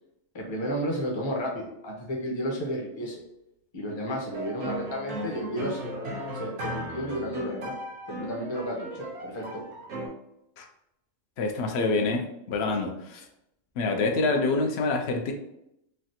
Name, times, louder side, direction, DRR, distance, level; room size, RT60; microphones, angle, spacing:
voice 1, 0.3-3.2 3.7-7.7 8.1-9.6 12.8-12.9, equal, 30° left, -2 dB, 0.6 m, -32 dB
sound 1, 4.3-10.1, right 1 dB, 70° right, 1.0 m, -36 dB
voice 2, 11.4-13.2 13.8-15.3, left 3 dB, 65° left, 4 dB, 0.7 m, -26 dB
3.3 x 2.4 x 2.7 m, 0.82 s
omnidirectional pair, 1.3 m